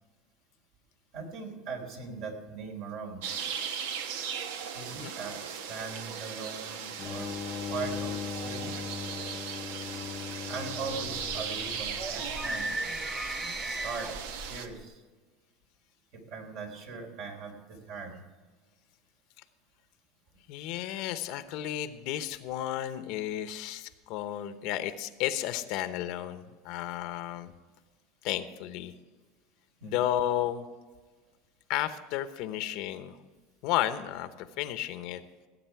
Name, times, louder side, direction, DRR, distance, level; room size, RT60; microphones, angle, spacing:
voice 1, 1.1-3.2 4.7-7.3 7.7-8.9 10.5-12.7 13.6-15.0 16.3-18.2 29.8-30.1, right 4 dB, 65° right, 2 dB, 3.6 m, -40 dB
sound 1, 3.2-14.7, right 7 dB, 80° right, 1.0 m, -38 dB
sound 2, 7.0-12.4, left 8 dB, 40° left, 0.5 m, -39 dB
sound 3, 10.9-14.8, right 1 dB, 15° right, 1.4 m, -37 dB
voice 2, 20.5-27.5 28.2-28.9 29.8-30.7 31.7-33.2 33.6-35.2, left 12 dB, 65° left, 11 dB, 0.9 m, -33 dB
17.0 x 8.5 x 4.7 m, 1.4 s
supercardioid pair, 120°, 0 cm